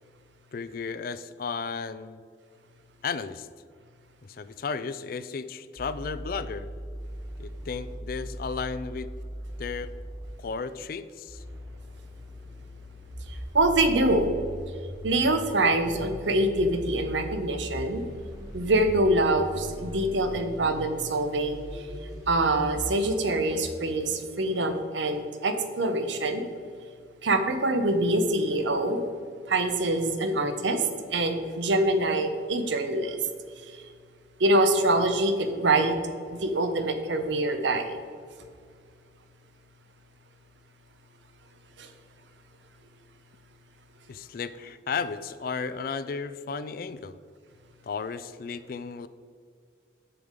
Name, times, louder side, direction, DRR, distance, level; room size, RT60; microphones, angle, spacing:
voice 1, 0.5-2.2 3.0-3.5 4.2-6.7 7.4-9.1 9.6-9.9 10.4-11.4 44.1-47.2 47.8-49.1, left 5 dB, 50° left, 14 dB, 0.3 m, -34 dB
sound 1, 5.8-10.4 11.2-23.9, equal, 20° right, 1.4 m, -40 dB
voice 2, 13.5-14.3 15.0-18.0 18.5-21.6 22.3-26.5 27.2-29.1 29.5-30.8 31.1-33.2 34.4-36.0 36.3-38.0 41.8-41.9, right 2 dB, 75° right, 8 dB, 0.8 m, -25 dB
7.3 x 6.9 x 5.1 m, 2.1 s
head